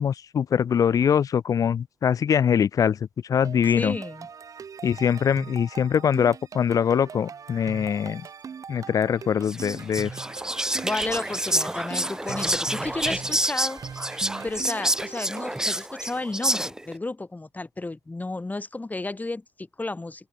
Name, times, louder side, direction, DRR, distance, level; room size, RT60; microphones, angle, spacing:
voice 1, 0.0-3.0 3.3-4.0 4.8-8.2 8.7-10.1, left 8 dB, 55° left, 0.9 m, -23 dB
sound 1, 3.4-15.7, right 6 dB, 50° right, 7.7 m, -41 dB
voice 2, 3.7-4.3 10.8-14.1 14.4-20.3, left 2 dB, 20° left, 5.0 m, -33 dB
Whispering, 9.5-16.9, right 1 dB, 10° right, 6.2 m, -28 dB
open air
hypercardioid pair, 45°, 7 cm